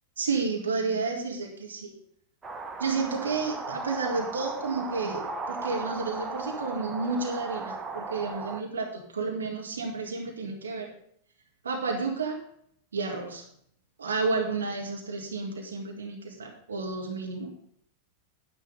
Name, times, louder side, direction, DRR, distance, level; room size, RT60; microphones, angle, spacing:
voice 1, 0.2-1.9 2.8-10.9 11.6-12.4 12.9-13.5 14.0-17.5, right 4 dB, 70° right, 1 dB, 1.9 m, -31 dB
sound 1, 2.4-8.6, right 3 dB, 15° right, 1.0 m, -36 dB
10.0 x 9.9 x 3.9 m, 0.67 s
figure-of-eight pair, 90°, 0 cm